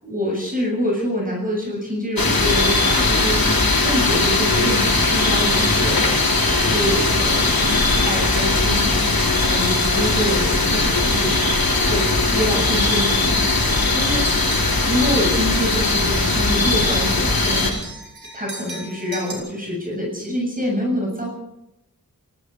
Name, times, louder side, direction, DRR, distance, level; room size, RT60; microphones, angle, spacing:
voice 1, 0.0-6.2 6.5-8.9 9.4-11.4 11.8-14.3 14.9-17.8 18.3-21.3, equal, 25° right, -1 dB, 7.3 m, -26 dB
sound 1, 2.2-17.7, left 2 dB, 85° left, 4.3 m, -19 dB
sound 2, 9.7-10.2 10.8-10.9 11.6-11.9 12.3-15.1 15.4-19.3, right 2 dB, 85° right, 6.1 m, -40 dB
27.0 x 19.5 x 4.9 m, 0.84 s
wide cardioid pair, 45°, 35 cm